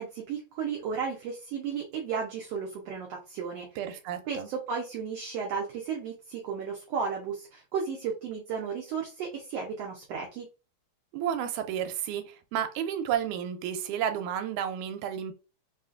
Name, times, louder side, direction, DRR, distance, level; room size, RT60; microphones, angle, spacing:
voice 1, 0.0-3.7 4.3-10.5, right 6 dB, 70° right, 1.6 m, -34 dB
voice 2, 3.8-4.5 11.1-15.3, right 9 dB, 90° right, 2.1 m, -31 dB
5.6 x 2.4 x 2.5 m
omnidirectional pair, 3.4 m